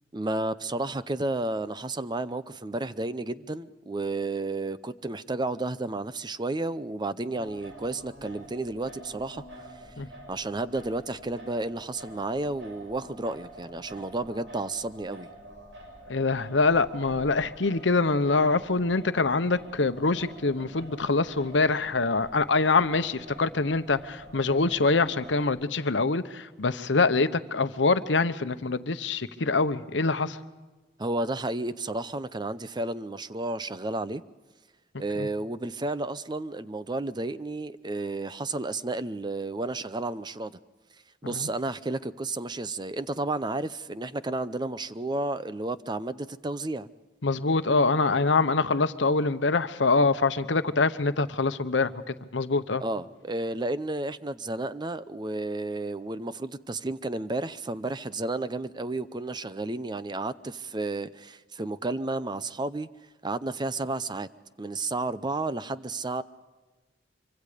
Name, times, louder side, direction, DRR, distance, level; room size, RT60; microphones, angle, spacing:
voice 1, 0.1-9.7 10.3-15.3 31.0-34.2 35.0-40.5 41.2-46.9 52.8-62.9 63.2-64.3 64.6-66.2, right 2 dB, 25° right, 14 dB, 0.6 m, -32 dB
Singing, 7.3-25.4, equal, 85° right, 6.7 m, -47 dB
voice 2, 16.1-30.4 35.2-35.3 41.3-41.5 47.2-52.8, left 3 dB, 85° left, 11 dB, 1.0 m, -25 dB
25.0 x 24.5 x 5.1 m, 1.2 s
head